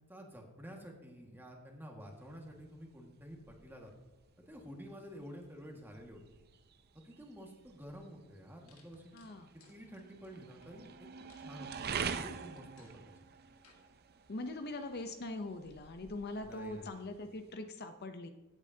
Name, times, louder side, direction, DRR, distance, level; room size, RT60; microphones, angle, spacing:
voice 1, 0.1-3.9 4.4-6.2 6.9-9.1 9.5-11.1 11.4-13.1 16.4-16.9, equal, 10° right, 1 dB, 1.8 m, -50 dB
sound 1, 2.0-17.5, right 6 dB, 50° right, 0.6 m, -47 dB
sound 2, 7.9-8.0 8.7-10.7 11.3-11.5 11.9-12.1 12.6-13.0 13.6-13.8, left 4 dB, 90° left, 2.0 m, -65 dB
voice 2, 9.1-9.5 14.3-18.3, left 2 dB, 50° left, 7 dB, 0.7 m, -42 dB
16.5 x 8.5 x 2.8 m, 1.1 s
head